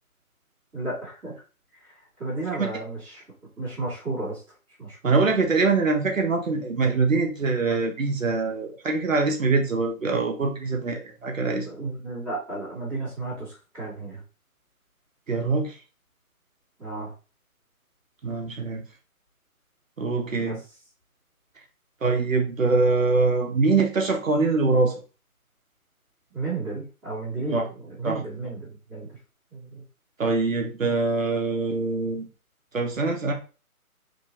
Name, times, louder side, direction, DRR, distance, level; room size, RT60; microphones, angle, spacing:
voice 1, 0.7-1.3 1.8-3.2 3.6-4.4 4.8-5.1 11.6-14.2 16.8-17.1 20.4-20.6 26.3-29.1 29.5-29.8, right 3 dB, ahead, -22 dB, 0.8 m, -33 dB
voice 2, 5.0-11.7 15.3-15.8 18.2-18.8 20.0-20.6 22.0-24.9 27.5-27.6 28.0-28.2 30.2-32.3 32.7-33.3, right 3 dB, 60° right, 3 dB, 0.7 m, -23 dB
3.0 x 2.6 x 2.7 m, 0.34 s
figure-of-eight pair, 145°, 44 cm